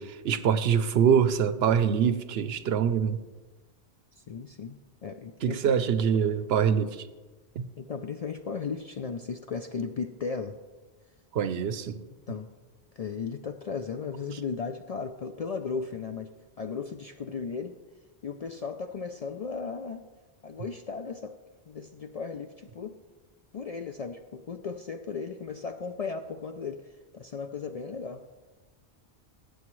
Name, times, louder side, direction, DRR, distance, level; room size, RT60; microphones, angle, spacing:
voice 1, 0.0-3.2 5.4-7.0 7.6-7.7 11.3-12.0, right 8 dB, 70° right, 12 dB, 0.8 m, -24 dB
voice 2, 4.1-5.8 7.8-10.6 12.3-12.5 13.0-16.3 16.6-17.8 18.2-20.0 20.4-21.4 21.7-23.0 23.5-28.2, left 5 dB, 60° left, 6 dB, 0.4 m, -36 dB
16.0 x 8.5 x 3.1 m, 1.2 s
omnidirectional pair, 1.1 m